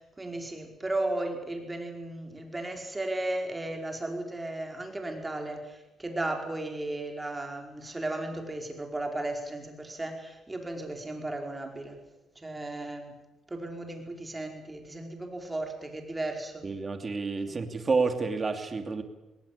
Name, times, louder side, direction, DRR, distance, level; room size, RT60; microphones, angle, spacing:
voice 1, 0.0-12.0 12.3-13.1 13.5-16.6 17.5-17.6, right 2 dB, 15° right, 3 dB, 5.0 m, -35 dB
voice 2, 16.6-19.0, right 4 dB, 35° right, 7 dB, 2.7 m, -29 dB
20.0 x 18.5 x 8.7 m, 1.0 s
cardioid pair, 90°, 0 cm